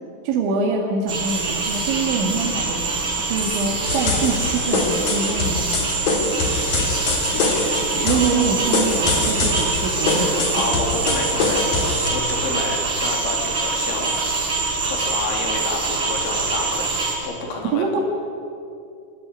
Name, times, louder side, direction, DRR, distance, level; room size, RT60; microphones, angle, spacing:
voice 1, 0.2-2.8 3.3-5.9 8.0-10.6 17.7-18.0, right 4 dB, 85° right, 0 dB, 4.5 m, -24 dB
sound 1, 1.1-17.1, right 3 dB, 30° right, 5.9 m, -24 dB
sound 2, 3.8-12.1, left 3 dB, 45° left, 4.4 m, -24 dB
voice 2, 6.7-8.5 10.2-14.2 14.8-18.0, left 2 dB, 85° left, 1 dB, 5.8 m, -30 dB
25.0 x 19.5 x 9.7 m, 2.5 s
omnidirectional pair, 5.2 m